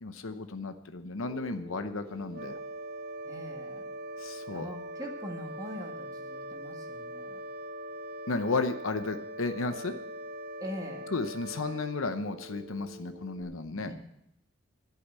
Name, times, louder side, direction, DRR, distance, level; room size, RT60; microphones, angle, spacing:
voice 1, 0.0-2.6 4.2-4.7 8.3-9.9 11.1-13.9, left 3 dB, 75° left, 8 dB, 0.8 m, -33 dB
Telephone, 1.2-13.4, left 1 dB, 75° right, 4.3 m, -49 dB
sound 1, 2.3-12.9, right 1 dB, 45° right, 0.5 m, -42 dB
voice 2, 3.3-3.9 4.5-7.4 10.6-11.1 13.7-14.0, equal, 15° right, 1 dB, 1.8 m, -42 dB
11.5 x 8.5 x 8.2 m, 0.80 s
head